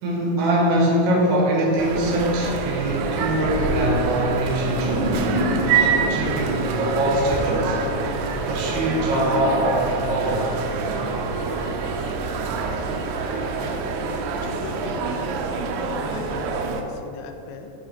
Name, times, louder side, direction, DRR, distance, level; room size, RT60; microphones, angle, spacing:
voice 1, 0.0-5.2 5.8-7.8 8.5-10.5, right 1 dB, 75° right, -3 dB, 1.8 m, -23 dB
sound 1, 1.7-13.9, right 1 dB, 50° right, 1.8 m, -36 dB
sound 2, 1.8-16.8, right 5 dB, 90° right, 2.3 m, -26 dB
sound 3, 4.7-7.7, equal, 60° left, 2.2 m, -29 dB
voice 2, 14.4-15.4 15.8-17.7, left 4 dB, 80° left, 5 dB, 2.5 m, -39 dB
8.9 x 5.1 x 4.3 m, 2.8 s
omnidirectional pair, 5.2 m